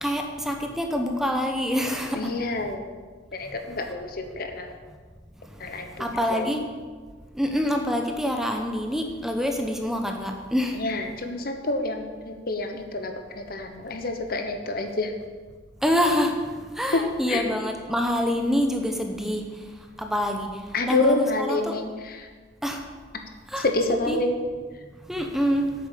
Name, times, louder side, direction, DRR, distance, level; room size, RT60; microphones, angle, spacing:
voice 1, 0.0-2.3 6.0-6.6 7.3-10.8 15.8-16.3 16.7-19.4 20.0-20.6 20.9-21.7 22.6-22.8 23.5-23.6 24.1-24.2 25.1-25.7, equal, ahead, 3 dB, 0.9 m, -26 dB
voice 2, 2.1-2.8 3.3-4.7 5.6-6.5 10.7-15.1 16.9-17.5 20.7-22.3 23.6-24.4, left 2 dB, 55° left, 5 dB, 1.0 m, -28 dB
8.6 x 7.8 x 6.8 m, 1.5 s
head